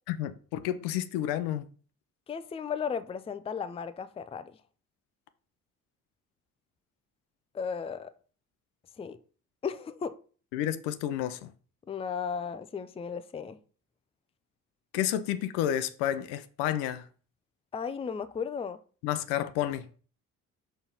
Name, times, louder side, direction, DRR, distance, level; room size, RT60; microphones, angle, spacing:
voice 1, 0.1-1.7 10.5-11.5 14.9-17.0 19.0-19.8, left 11 dB, 65° left, 0.7 m, -30 dB
voice 2, 2.3-4.5 7.5-8.1 9.0-9.2 9.6-10.2 11.9-13.6 17.7-18.8, left 6 dB, 15° left, 0.5 m, -35 dB
5.6 x 4.0 x 5.6 m
figure-of-eight pair, 45°, 43 cm